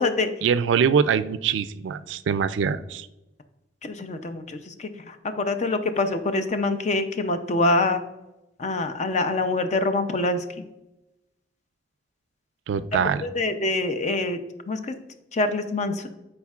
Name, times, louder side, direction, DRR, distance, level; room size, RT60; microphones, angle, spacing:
voice 1, 0.4-3.1 12.7-13.2, right 6 dB, 80° right, 14 dB, 0.3 m, -23 dB
voice 2, 3.8-8.0 8.6-10.6 13.2-14.4 14.7-15.0 15.3-16.1, left 2 dB, 40° left, 9 dB, 0.5 m, -25 dB
11.5 x 4.4 x 2.4 m, 0.95 s
head